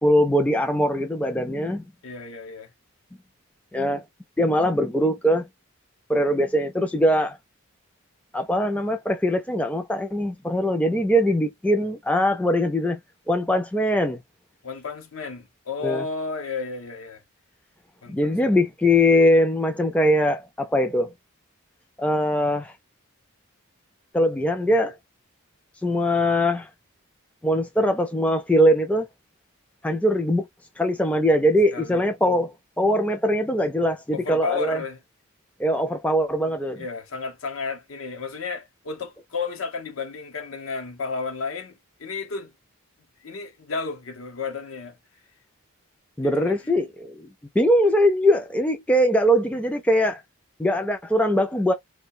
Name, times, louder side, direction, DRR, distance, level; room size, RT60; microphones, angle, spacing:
voice 1, 0.0-1.8 3.7-4.0 4.4-5.5 6.1-7.4 8.3-13.0 13.3-14.2 15.8-16.1 18.1-21.1 22.0-22.7 24.1-25.0 25.8-26.7 27.4-29.1 29.8-30.5 30.8-34.8 35.6-36.8 46.2-47.3 47.6-50.2 50.6-51.7, equal, 5° left, 0.3 m, -21 dB
voice 2, 2.0-2.7 14.6-17.2 18.0-18.6 31.7-32.0 34.1-35.0 36.5-42.5 43.2-45.0 46.2-46.6, left 4 dB, 70° left, 0.7 m, -32 dB
2.3 x 2.2 x 2.5 m
head